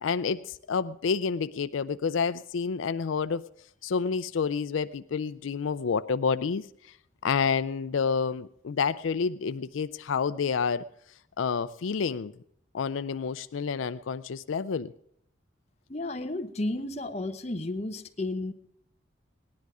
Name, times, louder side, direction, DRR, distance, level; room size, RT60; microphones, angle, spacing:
voice 1, 0.0-3.4 3.8-6.6 7.2-10.8 11.4-12.3 12.7-14.9, left 5 dB, 85° left, 14 dB, 0.4 m, -29 dB
voice 2, 15.9-18.5, left 2 dB, 35° left, 7 dB, 0.9 m, -32 dB
18.0 x 10.5 x 4.9 m, 0.70 s
head